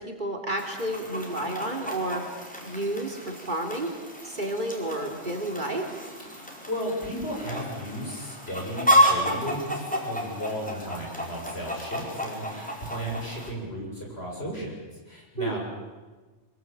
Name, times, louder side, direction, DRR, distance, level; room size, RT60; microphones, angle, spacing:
voice 1, 0.0-2.2 2.6-3.9 4.2-5.9 15.4-15.6, right 1 dB, 40° right, 2 dB, 3.3 m, -31 dB
Chicken rooster, 0.6-13.5, equal, 5° left, 4.7 m, -30 dB
voice 2, 6.3-14.8 15.1-15.6, equal, 60° left, -1 dB, 7.8 m, -34 dB
25.0 x 21.5 x 8.9 m, 1.3 s
omnidirectional pair, 1.2 m